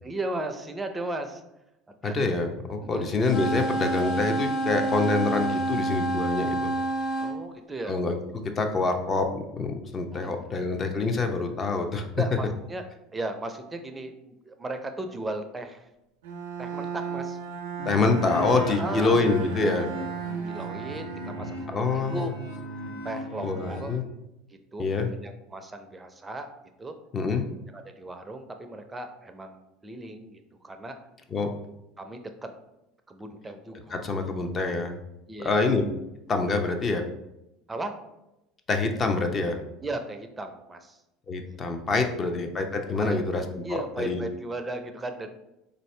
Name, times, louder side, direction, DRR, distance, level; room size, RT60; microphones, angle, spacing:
voice 1, 0.0-1.4 2.0-2.1 2.8-3.2 7.2-8.0 10.1-10.6 12.1-12.9 13.1-15.8 16.6-17.4 18.7-19.3 19.8-19.9 20.4-22.3 23.0-23.9 24.5-26.5 26.8-26.9 27.7-31.0 32.0-32.5 33.1-34.0 35.3-35.6 37.7-38.0 39.8-41.0 42.9-43.2 43.6-45.3, right 2 dB, 20° right, 7 dB, 0.5 m, -36 dB
voice 2, 2.0-6.7 7.9-12.1 17.8-19.9 21.7-22.3 23.4-24.0 24.8-25.1 27.1-27.5 31.3-31.5 33.9-35.0 35.4-35.8 36.3-37.0 38.7-39.6 41.3-44.2, left 3 dB, 35° left, 5 dB, 0.6 m, -26 dB
sound 1, 3.2-7.3, right 1 dB, 50° left, 1.0 m, -28 dB
Bowed string instrument, 16.2-22.2, right 6 dB, 80° right, 0.6 m, -36 dB
sound 2, 17.8-23.9, left 1 dB, 85° left, 1.1 m, -38 dB
4.1 x 2.7 x 3.2 m, 0.90 s
hypercardioid pair, 85°, 0 cm